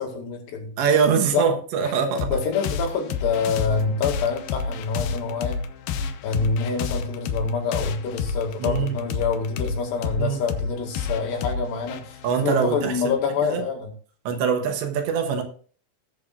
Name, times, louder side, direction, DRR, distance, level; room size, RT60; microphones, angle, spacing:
voice 1, 0.0-0.7 1.3-1.5 2.3-5.6 6.2-13.9, left 5 dB, 65° left, 3.9 m, -26 dB
voice 2, 0.8-2.4 8.6-9.0 10.2-10.4 12.2-13.0 13.4-13.6 14.3-15.4, right 6 dB, 75° right, 3.3 m, -23 dB
sound 1, 2.2-13.3, left 5 dB, 90° left, 2.0 m, -30 dB
19.5 x 7.8 x 2.5 m
omnidirectional pair, 5.4 m